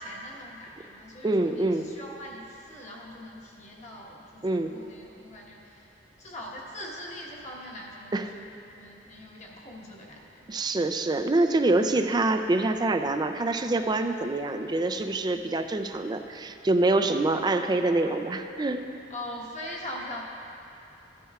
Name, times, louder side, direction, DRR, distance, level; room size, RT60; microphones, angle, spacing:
voice 1, 0.0-5.9 6.2-8.5 8.8-10.5 14.6-14.8 19.1-20.2, left 1 dB, 40° left, -3 dB, 1.3 m, -42 dB
voice 2, 1.2-1.9 4.4-4.8 8.1-8.3 10.5-18.8, right 2 dB, 20° right, 7 dB, 0.4 m, -25 dB
15.0 x 10.0 x 2.4 m, 2.9 s
head